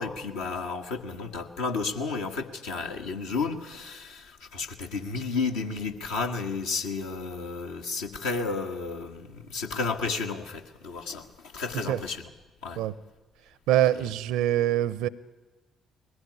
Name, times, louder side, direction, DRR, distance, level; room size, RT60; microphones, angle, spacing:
voice 1, 0.0-11.3 11.5-12.2 12.6-12.8 13.9-14.1, left 4 dB, 70° left, 2 dB, 1.4 m, -32 dB
voice 2, 13.7-15.1, right 13 dB, 65° right, 20 dB, 0.6 m, -24 dB
21.0 x 15.5 x 9.6 m, 1.2 s
figure-of-eight pair, 45°, 0 cm